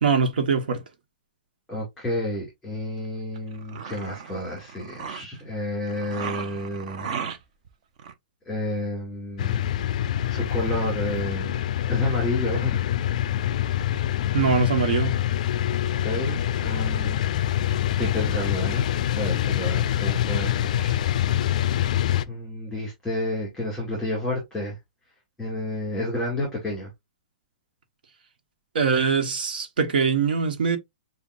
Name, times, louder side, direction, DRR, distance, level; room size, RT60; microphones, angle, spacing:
voice 1, 0.0-0.8 14.3-15.2 28.7-30.8, right 5 dB, 80° right, 1.2 m, -22 dB
voice 2, 1.7-7.1 8.4-9.7 10.3-12.8 16.0-17.2 18.0-18.9 19.2-21.0 22.3-24.8 25.4-26.9, left 1 dB, 5° left, 2.2 m, -30 dB
sound 1, 3.4-5.4 5.9-7.7 8.0-8.1, right 7 dB, 45° right, 0.8 m, -36 dB
sound 2, 9.4-22.2, left 11 dB, 50° left, 0.3 m, -25 dB
7.0 x 2.4 x 2.5 m
hypercardioid pair, 165°, 5 cm